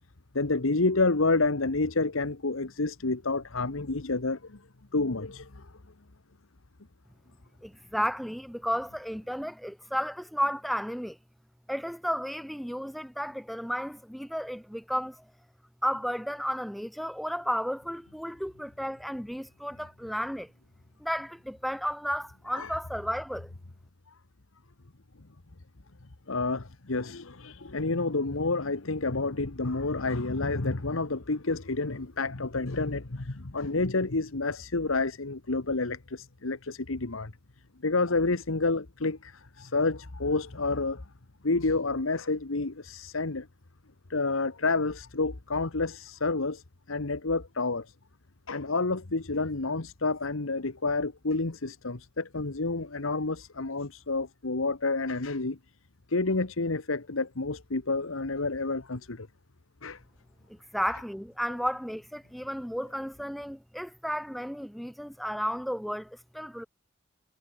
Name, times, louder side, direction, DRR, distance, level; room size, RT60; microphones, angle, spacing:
voice 1, 0.3-4.4 4.9-5.5 22.5-22.7 26.3-37.3 37.8-39.3 39.6-41.0 41.4-43.5 44.1-46.6 46.9-47.8 48.5-55.6 56.1-59.3 59.8-60.0, left 3 dB, 70° left, 1.4 m, -29 dB
voice 2, 7.6-11.2 11.7-15.3 15.8-20.5 21.0-23.5 60.5-66.7, equal, ahead, 2.0 m, -33 dB
head